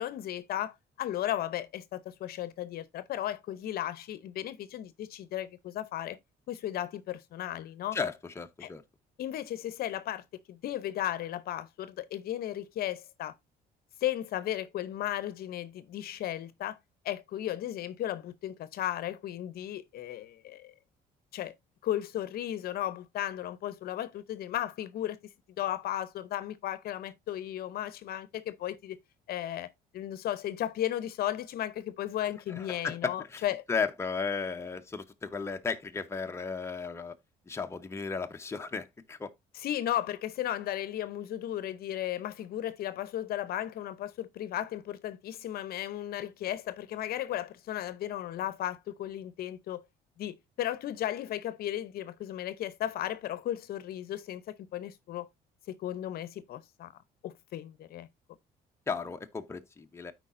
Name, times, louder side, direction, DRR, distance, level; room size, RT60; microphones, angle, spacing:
voice 1, 0.0-6.2 6.5-8.0 8.6-8.7 9.2-13.3 14.0-16.8 17.0-20.7 21.3-21.5 21.8-25.2 25.6-29.0 29.3-29.7 29.9-33.6 39.5-49.8 50.2-55.3 55.7-56.9 57.2-58.1, left 12 dB, 65° left, 0.7 m, -35 dB
voice 2, 7.9-8.8 32.5-37.1 37.5-39.3 58.9-60.1, left 5 dB, 15° left, 0.8 m, -35 dB
13.0 x 4.7 x 2.5 m
cardioid pair, 110°, 17 cm